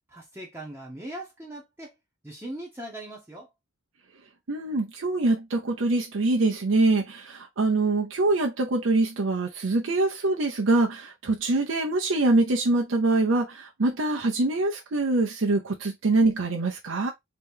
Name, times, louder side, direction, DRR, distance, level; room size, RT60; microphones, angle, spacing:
voice 1, 0.1-2.0 2.2-3.5, right 1 dB, 10° right, 0.8 m, -40 dB
voice 2, 4.5-17.1, right 2 dB, 75° right, 0.7 m, -24 dB
3.3 x 2.9 x 3.6 m
head